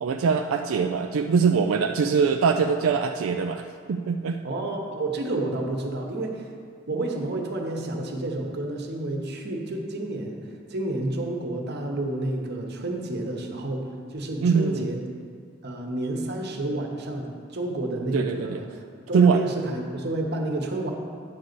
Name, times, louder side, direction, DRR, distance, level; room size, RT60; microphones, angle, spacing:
voice 1, 0.0-4.4 14.4-14.9 18.1-18.6 19.1-19.4, right 5 dB, 90° right, 5 dB, 0.4 m, -22 dB
voice 2, 4.4-6.5 6.9-15.0 15.6-18.8 19.1-20.9, right 2 dB, 55° right, 1 dB, 1.0 m, -30 dB
9.6 x 4.0 x 6.8 m, 2.3 s
head